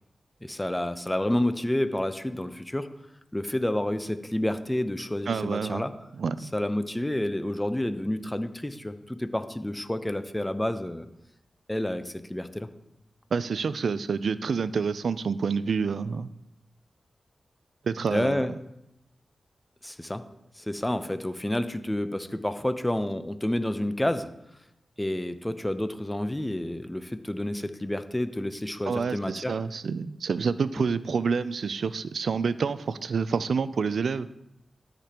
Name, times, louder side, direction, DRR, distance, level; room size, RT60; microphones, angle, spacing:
voice 1, 0.4-2.9 3.3-5.9 6.5-11.1 11.7-12.7 18.1-18.5 19.8-20.2 20.6-24.3 25.0-29.6, left 1 dB, 15° left, 10 dB, 0.7 m, -29 dB
voice 2, 5.3-5.8 6.2-6.5 13.3-16.3 17.8-18.5 28.9-34.3, right 5 dB, 75° right, 15 dB, 0.3 m, -28 dB
13.5 x 5.1 x 2.9 m, 0.85 s
cardioid pair, 40°, 0 cm